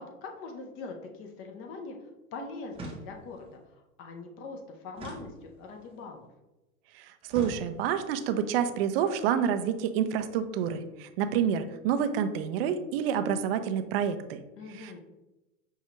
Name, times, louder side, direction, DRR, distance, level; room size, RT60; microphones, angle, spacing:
voice 1, 0.0-6.3 14.6-15.0, left 3 dB, 30° left, 3 dB, 0.6 m, -42 dB
sound 1, 2.7-3.5 4.9-5.9 7.3-8.1, right 2 dB, 15° right, 0.8 m, -43 dB
voice 2, 6.9-14.4 14.7-15.0, right 8 dB, 45° right, 9 dB, 0.4 m, -28 dB
5.4 x 2.3 x 2.9 m, 1.0 s
hypercardioid pair, 115°, 42 cm